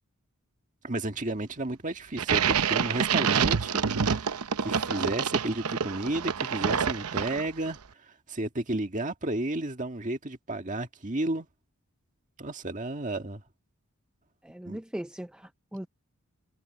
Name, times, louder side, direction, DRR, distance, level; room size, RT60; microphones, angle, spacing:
voice 1, 0.8-11.5 12.4-13.4 14.7-14.8, right 2 dB, 35° right, 1.8 m, -32 dB
sound 1, 2.2-7.7, right 7 dB, 90° right, 0.8 m, -27 dB
voice 2, 14.4-15.9, equal, 5° right, 0.4 m, -39 dB
head